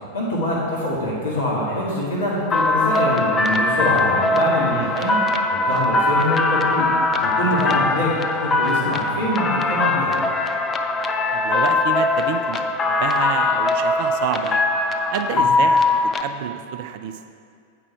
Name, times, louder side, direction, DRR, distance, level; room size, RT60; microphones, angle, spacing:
voice 1, 0.1-5.2 5.5-6.8 7.2-10.4 15.4-15.5, left 1 dB, 65° left, -6 dB, 1.7 m, -24 dB
sound 1, 2.5-16.2, left 2 dB, 20° left, 0.4 m, -21 dB
voice 2, 11.3-14.8 15.1-17.2, right 9 dB, 50° right, 8 dB, 0.4 m, -29 dB
8.6 x 4.9 x 4.8 m, 2.3 s
figure-of-eight pair, 90°, 0 cm